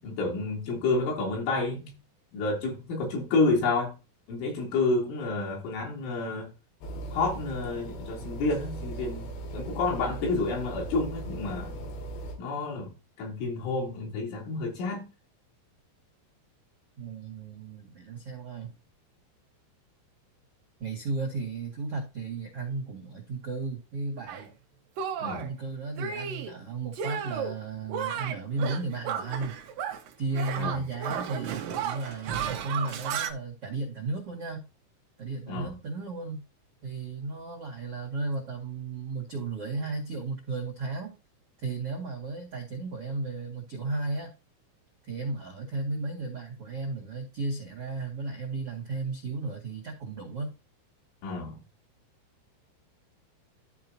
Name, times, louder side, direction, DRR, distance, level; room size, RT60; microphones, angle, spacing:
voice 1, 0.0-1.9 2.3-4.0 4.3-6.5 7.1-11.8 12.4-15.1 25.2-25.5 30.6-30.8 35.5-35.8 51.2-51.6, left 3 dB, 65° left, 5.6 m, -29 dB
sound 1, 6.8-12.4, right 2 dB, 80° left, 4.9 m, -38 dB
voice 2, 17.0-18.7 20.8-24.5 25.2-29.6 30.2-34.7 35.2-36.4 36.8-41.1 41.6-44.3 45.0-50.5, right 3 dB, 55° right, 1.6 m, -34 dB
Shatter, 24.3-24.5 25.0-25.5 26.0-26.5 26.9-27.6 27.9-30.1 30.3-33.3, right 8 dB, 85° right, 1.9 m, -33 dB
14.0 x 5.3 x 2.8 m
omnidirectional pair, 6.0 m